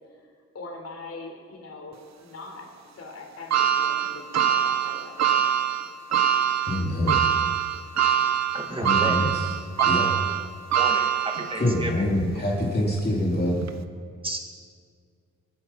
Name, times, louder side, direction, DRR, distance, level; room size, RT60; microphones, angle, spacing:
voice 1, 0.5-2.7 2.9-5.5, left 3 dB, 55° left, 1 dB, 3.7 m, -42 dB
sound 1, 3.5-11.9 12.4-12.5 13.6-13.7, right 9 dB, 65° right, 0.9 m, -24 dB
voice 2, 6.6-7.2 8.8-9.5 9.8-10.2 11.6-13.5, left 1 dB, 30° left, -4 dB, 3.0 m, -25 dB
voice 3, 8.5-9.2 9.8-9.9 10.8-12.0 14.2-14.4, right 1 dB, 15° right, 3 dB, 2.1 m, -32 dB
23.5 x 8.9 x 5.9 m, 2.1 s
cardioid pair, 100°, 30 cm